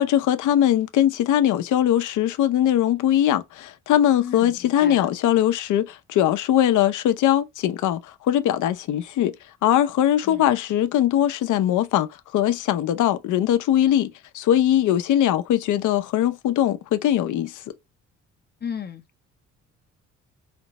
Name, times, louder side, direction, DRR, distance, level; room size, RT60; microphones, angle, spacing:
voice 1, 0.0-9.3 9.6-12.1 12.3-17.6, left 11 dB, 80° left, 0.7 m, -21 dB
voice 2, 4.2-5.1 10.3-10.4 18.6-19.2, left 7 dB, 35° left, 0.5 m, -35 dB
5.0 x 2.1 x 2.9 m
cardioid pair, 90°, 30 cm